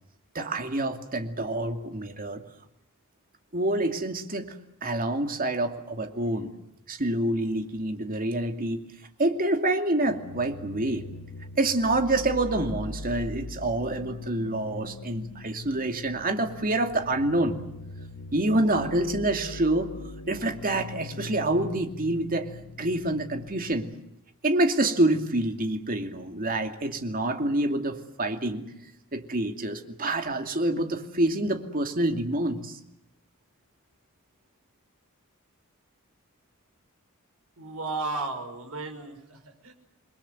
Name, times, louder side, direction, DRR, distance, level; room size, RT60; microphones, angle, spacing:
voice 1, 0.3-2.4 3.5-4.5 4.8-6.5 6.9-8.8 9.2-11.1 11.6-17.6 18.3-19.9 20.3-23.9 24.4-28.6 29.1-32.7, right 1 dB, 40° right, 6 dB, 2.5 m, -27 dB
sound 1, 10.0-23.7, left 2 dB, 90° left, 1.5 m, -41 dB
voice 2, 37.6-39.7, right 3 dB, 70° right, 6 dB, 5.3 m, -34 dB
29.0 x 22.0 x 7.9 m, 0.84 s
head